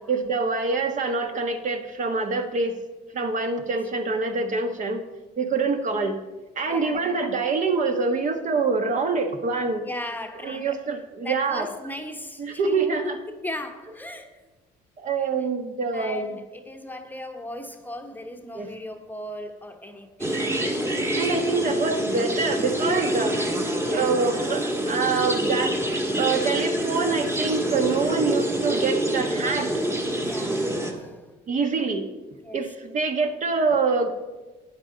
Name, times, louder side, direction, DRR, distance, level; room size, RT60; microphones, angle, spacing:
voice 1, 0.1-2.7 3.1-5.0 5.4-6.2 6.6-9.9 10.4-11.7 12.4-13.2 15.0-16.4 18.5-18.7 21.2-23.5 23.9-25.7 26.2-29.7 30.8-31.0 31.5-32.1 32.5-34.1, right 4 dB, 50° right, 6 dB, 1.2 m, -25 dB
voice 2, 6.7-7.0 9.8-10.8 11.2-14.3 15.2-15.3 15.9-20.5 23.8-24.2 30.2-31.3 32.4-32.6, left 1 dB, 10° left, 5 dB, 0.9 m, -37 dB
sound 1, 20.2-30.9, right 1 dB, 15° right, 1.4 m, -26 dB
12.0 x 9.1 x 3.9 m, 1.2 s
cardioid pair, 110°, 17 cm